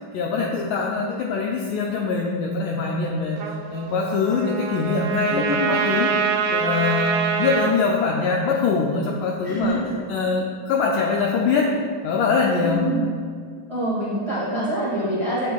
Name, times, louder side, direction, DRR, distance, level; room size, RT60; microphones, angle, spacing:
voice 1, 0.1-6.1 6.5-9.8 10.1-11.7 12.0-12.9, left 4 dB, 85° left, -1 dB, 1.8 m, -23 dB
Trumpet, 3.4-7.7, right 6 dB, 75° right, 2.2 m, -25 dB
voice 2, 5.3-5.8 9.4-9.9 12.6-13.0 13.7-15.5, equal, 25° right, -8 dB, 0.7 m, -25 dB
9.2 x 8.7 x 2.3 m, 2.1 s
omnidirectional pair, 4.3 m